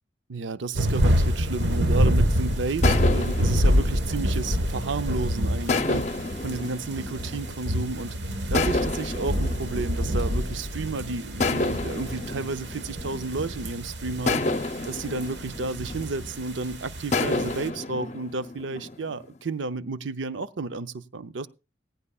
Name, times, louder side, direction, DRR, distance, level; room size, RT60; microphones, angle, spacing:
voice 1, 0.3-6.0 6.4-8.1 8.5-14.4 14.9-21.5, right 3 dB, 85° right, 0.6 m, -32 dB
sound 1, 0.7-17.7, equal, 70° right, 1.4 m, -27 dB
sound 2, 1.6-2.2 2.8-5.1 5.7-7.9 8.5-10.8 11.4-13.7 14.3-16.5 17.1-19.4, left 3 dB, 40° left, 0.7 m, -30 dB
17.0 x 15.5 x 2.4 m
head